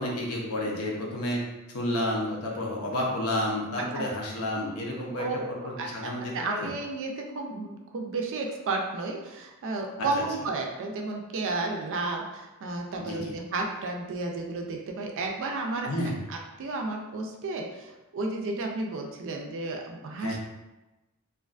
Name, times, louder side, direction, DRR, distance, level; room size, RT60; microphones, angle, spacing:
voice 1, 0.0-1.4 1.7-6.7 10.0-10.1 13.0-13.3 15.9-16.2 20.2-20.4, left 1 dB, 80° left, -2 dB, 0.6 m, -31 dB
voice 2, 5.8-15.9 16.3-20.4, right 3 dB, 60° right, 2 dB, 0.4 m, -32 dB
2.4 x 2.3 x 2.4 m, 1.0 s
head